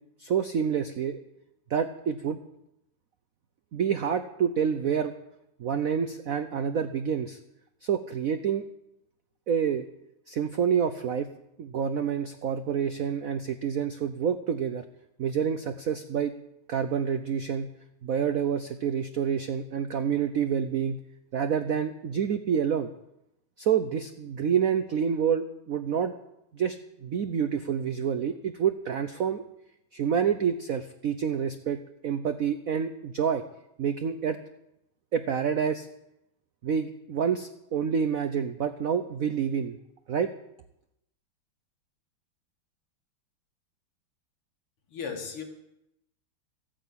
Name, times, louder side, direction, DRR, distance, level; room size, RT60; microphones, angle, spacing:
voice 1, 0.2-1.2 1.7-2.4 3.7-5.1 5.6-7.4 7.8-8.6 9.5-9.8 10.3-11.3 11.6-14.8 15.2-16.3 16.7-17.7 18.0-21.0 21.3-22.9 23.6-26.1 26.5-29.4 29.9-33.4 33.8-34.4 35.1-35.9 36.6-39.8 40.1-40.3, right 7 dB, 80° right, 9 dB, 0.7 m, -28 dB
voice 2, 44.9-45.4, left 6 dB, 85° left, 3 dB, 2.9 m, -35 dB
14.0 x 9.0 x 8.5 m, 0.84 s
omnidirectional pair, 2.4 m